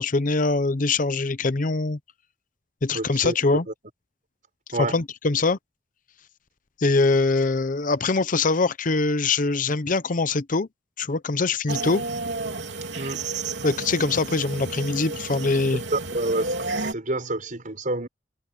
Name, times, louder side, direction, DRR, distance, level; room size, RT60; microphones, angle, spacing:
voice 1, 0.0-2.0 2.8-3.7 4.8-5.6 6.8-10.7 11.0-12.0 13.6-15.8, left 3 dB, 50° left, 0.7 m, -23 dB
voice 2, 2.9-3.3 4.7-5.0 12.9-13.2 15.9-18.1, right 2 dB, 50° right, 5.5 m, -28 dB
sound 1, 11.7-16.9, right 3 dB, 75° right, 3.1 m, -31 dB
head